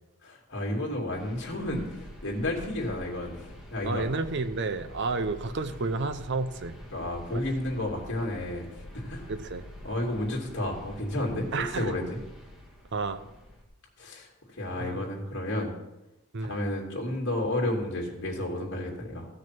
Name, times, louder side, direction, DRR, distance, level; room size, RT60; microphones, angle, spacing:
voice 1, 0.2-1.8 2.2-4.1 6.9-8.7 8.9-9.3 9.8-12.2 14.0-15.7 16.4-19.3, left 1 dB, 55° left, 0 dB, 2.8 m, -31 dB
sound 1, 1.1-13.6, left 1 dB, ahead, 2.3 m, -46 dB
voice 2, 3.8-6.8 7.3-7.4 9.3-9.6 11.5-12.0 12.9-13.2 14.8-15.0 16.3-16.6, right 3 dB, 55° right, 10 dB, 0.7 m, -31 dB
15.5 x 6.3 x 5.9 m, 0.96 s
head